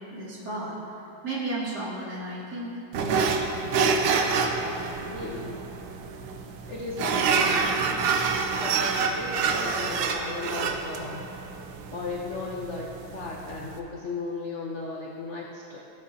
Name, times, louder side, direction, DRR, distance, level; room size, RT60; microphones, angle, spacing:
voice 1, 0.1-2.8, right 2 dB, 50° right, -7 dB, 2.5 m, -34 dB
sound 1, 2.9-13.8, right 5 dB, 80° right, 1.4 m, -27 dB
voice 2, 4.6-5.6 6.7-7.7 8.6-11.3 11.9-15.8, left 3 dB, 75° left, -3 dB, 0.6 m, -36 dB
15.0 x 8.1 x 2.7 m, 2.9 s
omnidirectional pair, 2.4 m